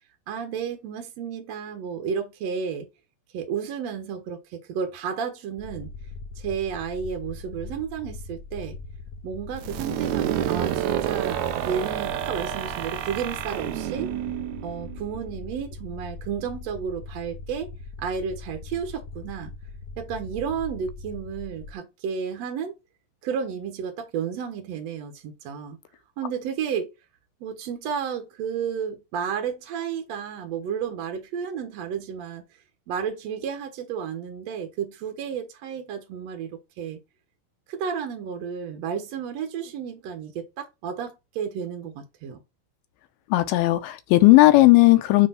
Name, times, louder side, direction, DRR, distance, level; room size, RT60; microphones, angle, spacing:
voice 1, 0.3-2.9 3.3-5.9 6.4-8.8 9.2-14.1 14.6-17.7 18.0-19.5 20.0-22.7 23.2-25.8 26.2-26.9 27.4-32.4 32.9-37.0 37.7-42.4, right 7 dB, 65° right, 1.8 m, -32 dB
sound 1, 5.6-21.7, left 3 dB, 65° left, 1.5 m, -40 dB
sound 2, 9.6-15.3, right 12 dB, 85° right, 1.6 m, -29 dB
voice 2, 43.3-45.3, left 18 dB, 85° left, 2.6 m, -16 dB
7.6 x 3.3 x 5.6 m
omnidirectional pair, 4.3 m